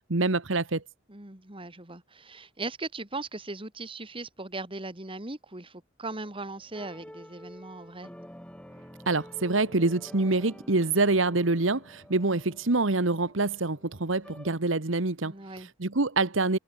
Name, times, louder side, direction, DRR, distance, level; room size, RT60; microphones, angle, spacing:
voice 1, 0.1-0.8 9.1-16.6, right 3 dB, 75° right, 1.5 m, -26 dB
voice 2, 1.1-8.1 15.2-15.7, right 2 dB, 25° right, 2.4 m, -39 dB
sound 1, 6.1-14.5, equal, 5° left, 4.1 m, -49 dB
head